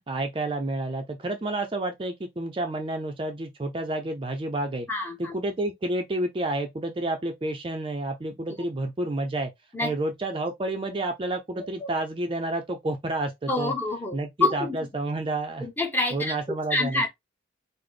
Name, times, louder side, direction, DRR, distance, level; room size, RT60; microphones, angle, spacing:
voice 1, 0.1-4.9 5.2-9.5 9.8-13.7 14.1-15.7 16.1-17.0, right 2 dB, 25° right, 0.4 m, -30 dB
voice 2, 4.9-5.3 8.6-8.7 9.7-9.9 11.6-11.9 13.5-14.8 15.6-16.4 16.7-17.1, left 2 dB, 10° left, 0.7 m, -27 dB
3.8 x 2.0 x 3.2 m
head